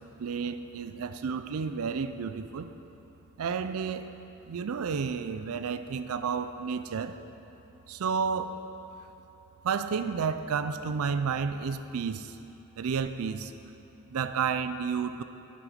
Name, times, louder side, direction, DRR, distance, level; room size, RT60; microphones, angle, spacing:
voice 1, 0.2-2.7 3.4-4.1 4.4-7.2 7.9-8.6 9.6-12.4 12.8-13.5 14.1-15.2, right 6 dB, 80° right, 11 dB, 0.4 m, -31 dB
10.0 x 7.6 x 5.1 m, 2.9 s
head